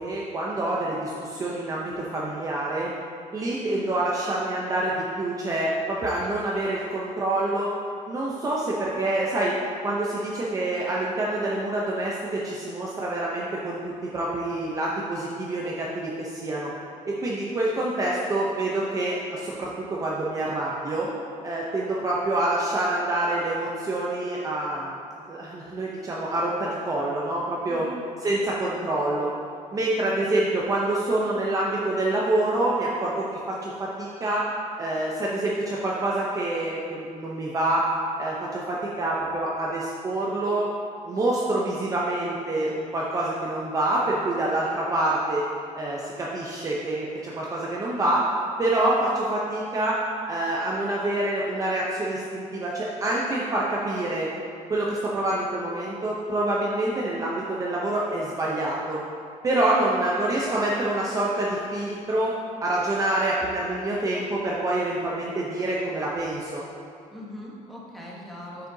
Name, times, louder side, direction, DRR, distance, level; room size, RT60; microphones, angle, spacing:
voice 1, 0.0-2.9 3.3-7.7 8.1-9.5 9.8-16.7 17.0-21.1 21.4-25.0 25.3-27.8 28.2-29.3 29.7-33.3 33.6-34.4 34.8-37.8 38.2-40.7 41.0-45.4 45.8-48.2 48.6-49.9 50.3-54.3 54.7-59.0 59.4-62.3 62.6-66.6, right 1 dB, 25° right, -4 dB, 0.7 m, -26 dB
voice 2, 27.6-28.0 67.1-68.7, left 1 dB, ahead, -5 dB, 1.1 m, -40 dB
8.3 x 6.5 x 2.7 m, 2.4 s
cardioid pair, 155°, 14 cm